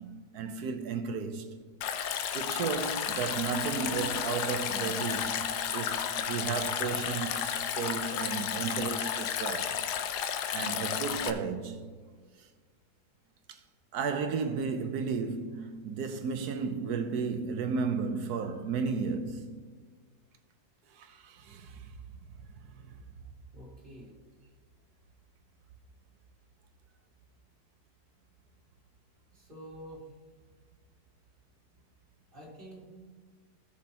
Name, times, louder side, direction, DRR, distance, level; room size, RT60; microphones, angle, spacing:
voice 1, 0.0-1.5 2.3-5.4 5.7-9.8 10.5-11.8 13.5-13.6 13.9-19.5 20.9-21.9 22.8-23.0, right 5 dB, 80° right, 1.4 m, -33 dB
Stream, 1.8-11.3, left 8 dB, 90° left, 1.2 m, -32 dB
voice 2, 23.5-24.1 29.3-30.1 32.3-32.9, right 1 dB, 30° right, 3.2 m, -48 dB
16.5 x 6.5 x 2.9 m
omnidirectional pair, 1.7 m